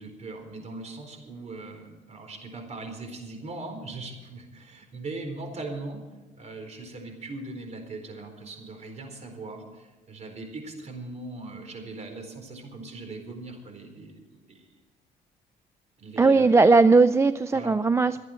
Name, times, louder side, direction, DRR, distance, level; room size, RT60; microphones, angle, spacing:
voice 1, 0.0-6.0 6.4-14.7 16.0-16.7 17.5-17.8, right 3 dB, 40° right, 5 dB, 4.2 m, -40 dB
voice 2, 16.2-18.3, right 3 dB, 15° right, 13 dB, 0.4 m, -18 dB
25.5 x 8.8 x 4.4 m, 1.2 s
cardioid pair, 110°, 17 cm